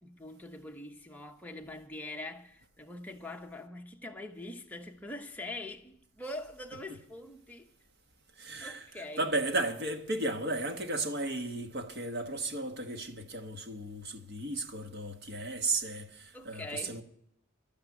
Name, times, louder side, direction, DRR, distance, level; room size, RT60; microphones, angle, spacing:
voice 1, 0.0-7.7 8.6-9.3 16.3-17.0, left 1 dB, 10° left, 0.9 m, -43 dB
voice 2, 8.4-17.0, right 2 dB, 50° right, 1.2 m, -34 dB
12.0 x 8.7 x 9.0 m
head